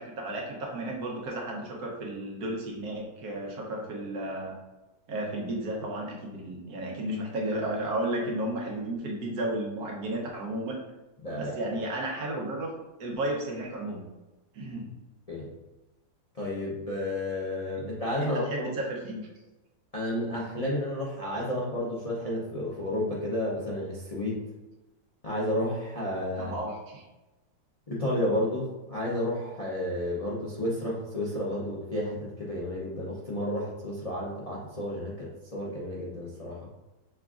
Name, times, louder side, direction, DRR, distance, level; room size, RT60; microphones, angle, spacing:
voice 1, 0.0-4.5 5.1-10.8 11.3-12.7 13.0-14.0 14.5-14.9 18.2-19.2 26.4-27.0, right 1 dB, 60° right, -1 dB, 1.3 m, -33 dB
voice 2, 11.2-11.5 15.3-15.5 16.3-18.7 19.9-24.4 25.2-26.5 27.9-36.7, left 1 dB, 65° left, -6 dB, 0.3 m, -31 dB
5.9 x 3.5 x 2.4 m, 1.1 s
omnidirectional pair, 2.0 m